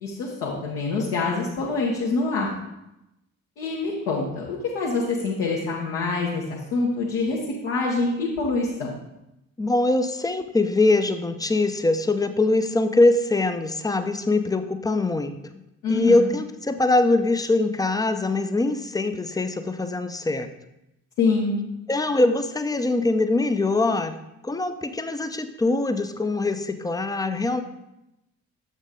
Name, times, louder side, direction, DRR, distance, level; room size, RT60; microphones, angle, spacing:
voice 1, 0.0-2.5 3.6-8.9 15.8-16.3 21.2-21.6, left 3 dB, 70° left, -4 dB, 1.2 m, -25 dB
voice 2, 9.6-15.3 15.9-20.5 21.9-24.2 24.4-27.6, left 2 dB, 10° left, 9 dB, 0.5 m, -22 dB
7.2 x 5.4 x 3.7 m, 0.89 s
figure-of-eight pair, 40°, 40 cm